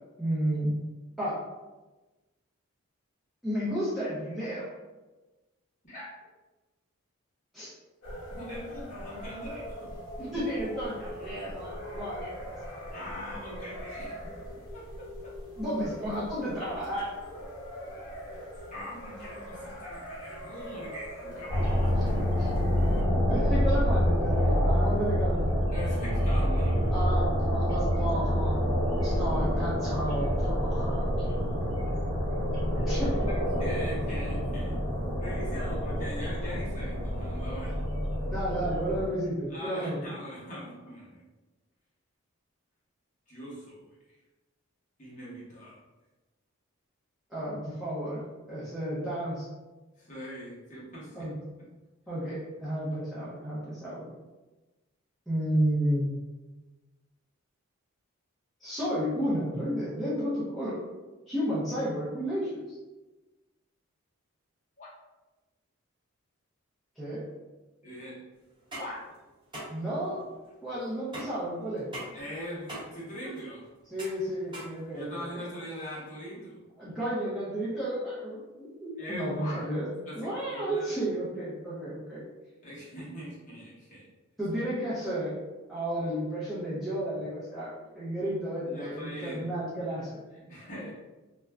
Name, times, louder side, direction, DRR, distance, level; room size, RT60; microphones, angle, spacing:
voice 1, 0.2-0.7 1.2-1.4 3.4-4.7 7.5-7.7 10.3-12.3 15.6-17.1 21.9-22.0 22.4-22.7 23.3-25.6 26.9-28.7 29.0-31.6 32.9-33.3 38.3-40.0 47.3-48.2 48.5-49.5 51.1-51.3 52.1-54.1 55.3-56.1 58.6-60.8 61.3-62.8 67.0-67.2 69.7-70.3 70.6-71.9 73.9-75.4 76.8-82.2 84.4-85.3 85.7-90.2, equal, ahead, -11 dB, 0.6 m, -32 dB
sound 1, 8.0-23.0, equal, 65° left, 0.8 m, -42 dB
voice 2, 8.3-9.9 10.2-10.3 12.9-14.3 14.7-15.3 18.7-22.0 25.7-27.1 29.0-29.5 32.7-32.9 33.3-34.8 35.2-37.8 39.5-41.2 43.3-44.2 45.0-45.8 50.0-51.2 64.8-64.9 67.8-68.2 68.7-69.0 72.1-73.6 74.9-76.6 79.0-79.7 80.1-80.9 82.6-84.1 88.7-89.4 90.3-90.9, equal, 35° left, -7 dB, 0.9 m, -41 dB
sound 2, 21.5-39.1, equal, 65° right, 1.1 m, -27 dB
sound 3, 68.5-75.4, right 1 dB, 20° right, 0.9 m, -44 dB
2.4 x 2.1 x 3.3 m, 1.1 s
head